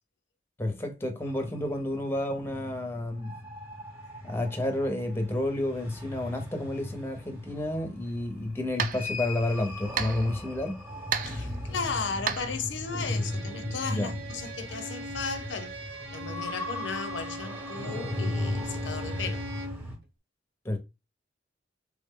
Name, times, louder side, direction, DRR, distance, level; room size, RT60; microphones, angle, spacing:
voice 1, 0.6-3.4 4.2-10.8 13.9-14.1 20.6-20.8, left 1 dB, 15° left, 0.6 m, -30 dB
sound 1, 1.2-20.0, left 1 dB, 10° right, 0.9 m, -38 dB
sound 2, 8.1-13.3, right 7 dB, 45° right, 0.4 m, -36 dB
voice 2, 11.2-19.4, left 4 dB, 80° left, 0.6 m, -35 dB
Bowed string instrument, 13.0-19.9, right 1 dB, 65° right, 0.9 m, -41 dB
3.4 x 2.0 x 3.6 m
head